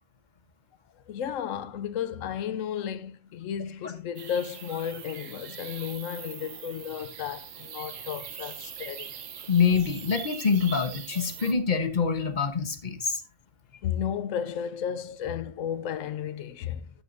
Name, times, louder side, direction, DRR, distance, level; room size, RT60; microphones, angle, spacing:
voice 1, 0.9-9.1 13.8-16.9, left 8 dB, 90° left, 1.0 m, -33 dB
sound 1, 4.2-11.5, right 8 dB, 90° right, 1.3 m, -42 dB
voice 2, 9.5-13.2, left 6 dB, 40° left, 1.1 m, -25 dB
11.0 x 8.4 x 2.6 m
omnidirectional pair, 1.3 m